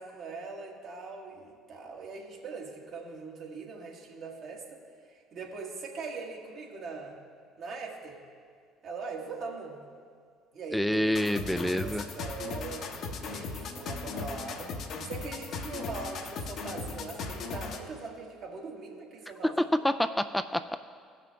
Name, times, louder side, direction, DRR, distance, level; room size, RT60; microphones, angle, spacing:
voice 1, 0.0-4.8 5.1-7.2 7.6-8.2 8.8-9.9 10.5-12.8 13.2-14.7 15.1-19.7, right 4 dB, 60° right, 0 dB, 1.6 m, -41 dB
voice 2, 10.7-12.1 19.4-20.8, left 1 dB, 5° left, 10 dB, 0.3 m, -27 dB
sound 1, 11.1-17.9, left 4 dB, 60° left, 1.0 m, -38 dB
16.5 x 6.0 x 3.5 m, 2.1 s
hypercardioid pair, 70°, 0 cm